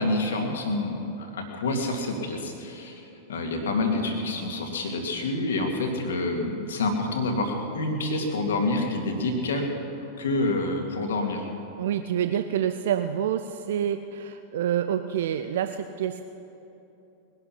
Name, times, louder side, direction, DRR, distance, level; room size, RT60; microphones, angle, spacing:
voice 1, 0.0-3.0 3.3-9.7 10.2-11.4, left 2 dB, 65° left, 3 dB, 2.2 m, -27 dB
voice 2, 11.8-16.2, right 9 dB, 60° right, 9 dB, 0.5 m, -27 dB
21.0 x 11.0 x 5.8 m, 2.9 s
figure-of-eight pair, 90°, 0 cm